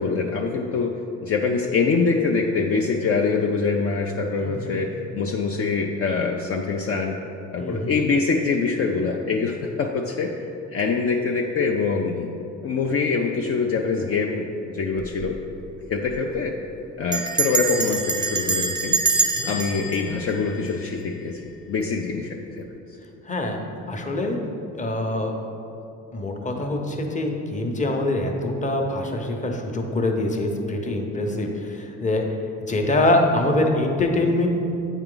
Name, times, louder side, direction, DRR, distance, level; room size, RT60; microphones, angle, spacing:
voice 1, 0.0-7.2 7.5-10.3 10.7-12.3 12.6-15.4 15.9-16.6 17.0-19.0 19.4-21.4 21.7-22.6, left 4 dB, 50° left, 1 dB, 0.5 m, -24 dB
voice 2, 4.4-4.9 7.6-8.0 19.4-19.5 23.3-23.6 23.9-24.4 24.8-25.3 26.1-32.2 32.7-34.5, left 2 dB, 25° left, 2 dB, 0.8 m, -24 dB
Bell, 15.0-15.4 15.6-15.7 15.9-16.3 17.1-21.2, right 4 dB, 15° right, 0.5 m, -25 dB
8.0 x 4.5 x 3.8 m, 2.8 s
cardioid pair, 90°, 30 cm